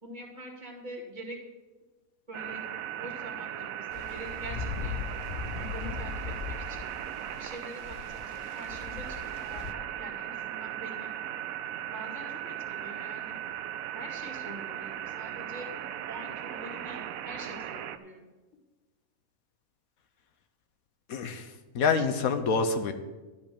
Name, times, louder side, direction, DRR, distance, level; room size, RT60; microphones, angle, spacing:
voice 1, 0.0-1.4 2.3-5.0 5.6-6.9 7.3-11.1 11.8-13.4 13.9-15.7 16.1-18.3, right 1 dB, 30° right, -2 dB, 2.4 m, -45 dB
sound 1, 2.3-18.0, right 11 dB, 75° right, 1.0 m, -38 dB
sound 2, 3.9-9.7, left 6 dB, 50° left, 0.8 m, -39 dB
voice 2, 21.1-22.9, left 5 dB, 75° left, 8 dB, 1.3 m, -27 dB
11.5 x 5.3 x 8.7 m, 1.2 s
omnidirectional pair, 1.5 m